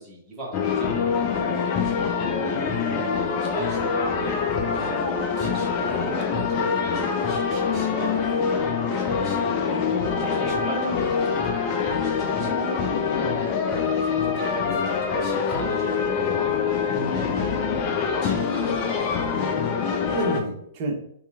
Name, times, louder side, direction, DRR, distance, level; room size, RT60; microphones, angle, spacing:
voice 1, 0.0-5.0 5.3-8.4 9.0-9.6 10.2-12.5 13.3-13.5 14.1-17.0 18.0-18.4, right 1 dB, 25° right, -4 dB, 1.0 m, -39 dB
sound 1, 0.5-20.4, left 5 dB, 35° left, 0.4 m, -25 dB
voice 2, 2.9-3.2 9.9-10.2 12.4-12.6 19.3-21.0, right 2 dB, 40° right, 3 dB, 0.6 m, -33 dB
2.9 x 2.4 x 2.3 m, 0.71 s
figure-of-eight pair, 110°, 0 cm